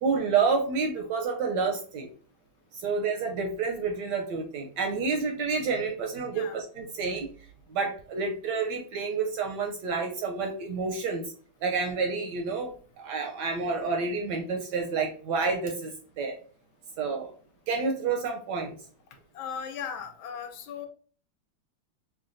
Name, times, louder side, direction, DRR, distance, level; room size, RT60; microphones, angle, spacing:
voice 1, 0.0-2.1 2.7-7.3 7.7-11.2 11.6-16.3 17.0-17.3 17.7-18.7, right 4 dB, 75° right, 3 dB, 1.0 m, -29 dB
voice 2, 19.3-20.9, left 7 dB, 80° left, 5 dB, 1.4 m, -37 dB
5.7 x 2.2 x 2.5 m, 0.43 s
omnidirectional pair, 2.2 m